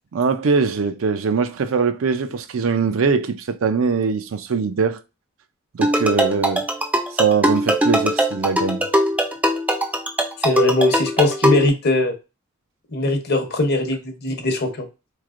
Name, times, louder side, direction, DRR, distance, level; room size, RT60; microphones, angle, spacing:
voice 1, 0.1-5.0 5.7-6.6 7.1-8.8, right 5 dB, 70° right, 0.5 m, -21 dB
sound 1, 5.8-11.7, equal, 5° right, 0.3 m, -21 dB
voice 2, 10.4-12.1 12.9-14.9, left 2 dB, 50° left, 0.8 m, -20 dB
4.1 x 3.2 x 2.4 m
head